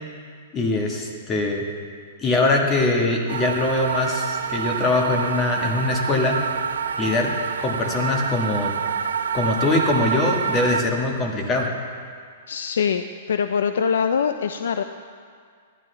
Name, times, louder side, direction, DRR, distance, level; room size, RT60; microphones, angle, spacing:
voice 1, 0.5-1.7 2.2-6.4 7.0-8.7 9.3-11.7, left 2 dB, 20° left, 1 dB, 1.5 m, -22 dB
sound 1, 3.3-10.8, right 7 dB, 90° right, 0.5 m, -27 dB
voice 2, 12.5-14.8, left 6 dB, 80° left, 8 dB, 0.4 m, -23 dB
15.0 x 11.5 x 3.4 m, 2.1 s
hypercardioid pair, 145°, 0 cm